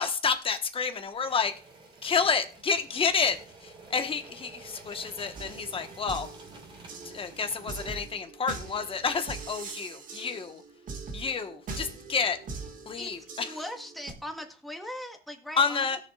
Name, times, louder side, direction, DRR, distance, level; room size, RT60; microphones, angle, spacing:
voice 1, 0.0-1.5 2.0-3.4 3.6-6.3 7.0-10.6 11.1-12.4 12.9-13.5 15.6-16.0, left 5 dB, 35° left, 8 dB, 1.3 m, -29 dB
sound 1, 1.1-8.2, right 2 dB, 30° right, 3.3 m, -50 dB
sound 2, 5.4-14.1, right 4 dB, 50° right, 1.9 m, -42 dB
voice 2, 13.0-15.9, left 1 dB, ahead, 2 dB, 1.7 m, -40 dB
17.5 x 6.8 x 2.4 m, 0.39 s
cardioid pair, 110°, 17 cm